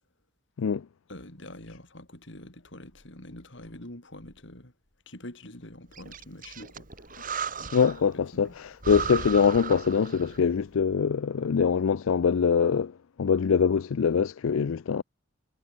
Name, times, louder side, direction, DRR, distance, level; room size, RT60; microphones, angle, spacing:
voice 1, 1.1-4.7 5.1-7.2 7.6-7.9, left 1 dB, 60° left, 4.6 m, -45 dB
Breathing, 5.9-8.1 8.4-8.5 8.8-10.5, right 5 dB, 40° right, 4.8 m, -36 dB
voice 2, 7.7-15.0, left 6 dB, 80° left, 0.4 m, -24 dB
head